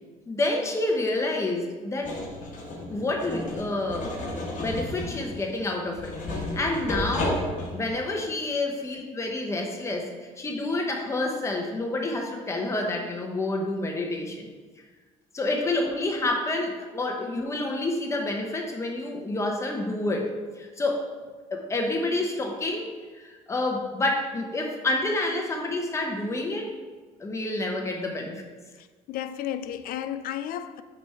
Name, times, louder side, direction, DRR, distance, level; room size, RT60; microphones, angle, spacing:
voice 1, 0.3-2.2 2.9-14.5 15.3-21.1 21.5-26.7 27.2-28.4, left 2 dB, 20° left, 2 dB, 0.8 m, -29 dB
sound 1, 2.0-8.0, left 1 dB, 60° left, 1.3 m, -33 dB
voice 2, 29.1-30.8, left 10 dB, 80° left, 12 dB, 0.4 m, -33 dB
5.9 x 3.5 x 5.6 m, 1.4 s
cardioid pair, 145°, 15 cm